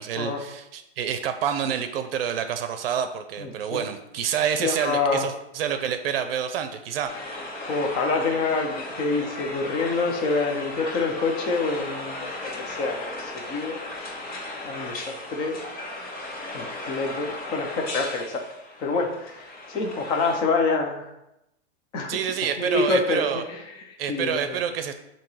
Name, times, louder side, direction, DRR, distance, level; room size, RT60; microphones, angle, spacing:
voice 1, 0.0-7.1 22.1-23.4 24.0-24.9, right 8 dB, 60° right, 9 dB, 0.6 m, -28 dB
voice 2, 3.4-3.8 4.6-5.3 7.7-13.8 14.0-14.1 14.6-15.6 16.5-18.4 18.8-21.1 21.9-22.2 22.6-24.6, left 3 dB, 15° left, 2 dB, 0.4 m, -27 dB
sound 1, 7.0-20.4, left 2 dB, 45° left, 1.7 m, -36 dB
7.4 x 2.9 x 5.5 m, 0.86 s
supercardioid pair, 165°, 33 cm